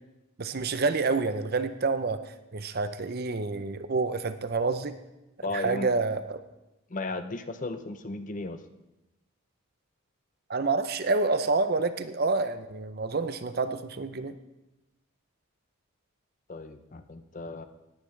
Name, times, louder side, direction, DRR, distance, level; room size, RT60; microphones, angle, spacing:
voice 1, 0.4-5.0 5.5-6.4 10.5-14.3, right 3 dB, 45° right, 11 dB, 0.6 m, -28 dB
voice 2, 5.4-5.9 6.9-8.6 16.5-17.7, left 2 dB, 35° left, 10 dB, 0.6 m, -35 dB
17.5 x 10.5 x 3.3 m, 0.97 s
head